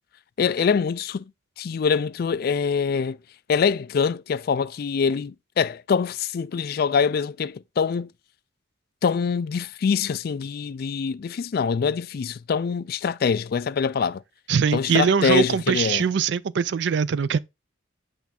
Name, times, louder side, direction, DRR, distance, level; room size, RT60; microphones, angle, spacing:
voice 1, 0.4-1.2 1.6-3.2 3.5-8.1 9.0-14.2 14.7-16.0, left 6 dB, 50° left, 0.3 m, -24 dB
voice 2, 14.5-17.4, right 7 dB, 60° right, 0.4 m, -22 dB
8.2 x 3.4 x 4.2 m
head